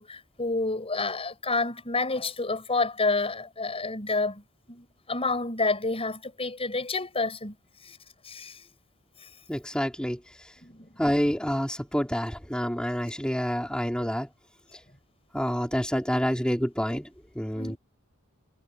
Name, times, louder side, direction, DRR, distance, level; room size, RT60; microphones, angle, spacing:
voice 1, 0.0-4.4 4.7-7.6 7.8-8.0 8.2-8.6 10.6-10.9 14.0-14.1 17.6-17.8, left 3 dB, 25° left, 7.0 m, -29 dB
voice 2, 9.5-10.5 11.0-14.3 14.7-14.8 15.3-17.1 17.3-17.8, equal, 5° left, 4.6 m, -28 dB
head